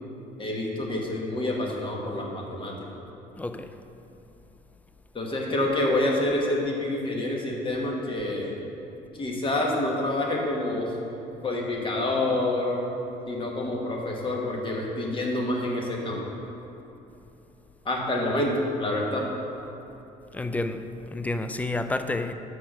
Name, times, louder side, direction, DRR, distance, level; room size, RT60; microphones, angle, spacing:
voice 1, 0.4-2.7 5.1-8.6 9.2-10.9 11.4-12.8 13.3-16.2 17.8-19.3, left 1 dB, 30° left, 1.3 m, -27 dB
voice 2, 3.4-3.8 20.3-22.3, left 2 dB, 10° left, 0.3 m, -30 dB
6.1 x 5.0 x 6.1 m
cardioid pair, 110°, 17 cm